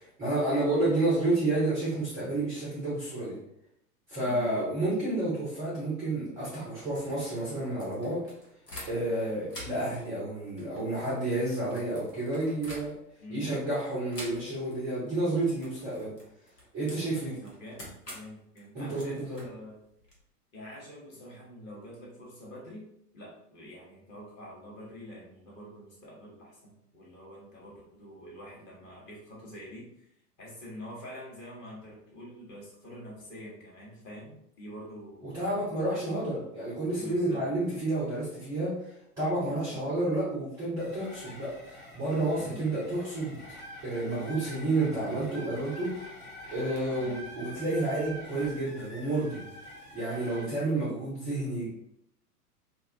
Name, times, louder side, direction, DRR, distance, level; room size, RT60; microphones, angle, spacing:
voice 1, 0.0-3.4 4.1-8.2 8.9-12.9 13.3-16.1 16.7-17.4 18.7-19.4 35.2-38.8 39.2-43.4 43.8-46.0 46.5-49.4 49.9-51.7, right 2 dB, 5° right, -9 dB, 0.4 m, -30 dB
voice 2, 4.2-4.9 9.0-9.5 13.2-13.6 17.4-19.8 20.5-22.9 23.1-30.1 30.4-36.3 37.0-37.5 39.5-39.8 42.4-42.9 46.9-47.2 50.2-50.5, equal, 25° left, -4 dB, 0.8 m, -46 dB
sound 1, 6.7-9.2 9.5-13.3 14.1-14.8 15.0-15.3 15.6-20.2, equal, 90° left, 1.0 m, -47 dB
sound 2, 40.8-50.5, equal, 65° left, 0.9 m, -46 dB
2.5 x 2.2 x 2.5 m, 0.76 s
figure-of-eight pair, 100°, 47 cm